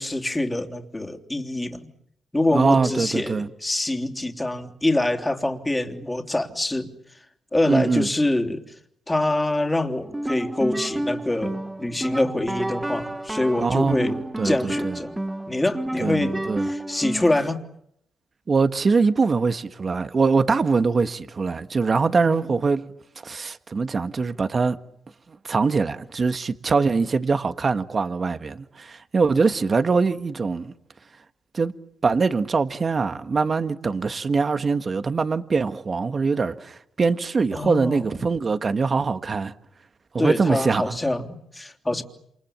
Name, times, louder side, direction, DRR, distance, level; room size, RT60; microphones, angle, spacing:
voice 1, 0.0-1.9 2.3-6.9 7.5-8.6 9.1-14.2 14.4-15.2 15.5-16.4 16.6-17.6 22.3-22.6 37.5-38.1 40.2-42.0, left 1 dB, 15° left, 3.3 m, -25 dB
voice 2, 2.5-3.5 7.7-8.1 13.6-15.0 16.0-16.7 18.5-22.9 23.2-24.8 25.3-30.7 31.5-31.7 32.0-39.5 40.1-41.0, right 4 dB, 40° right, 1.5 m, -23 dB
sound 1, 10.0-17.5, right 1 dB, 10° right, 1.3 m, -30 dB
28.5 x 28.0 x 7.3 m
cardioid pair, 90°, 0 cm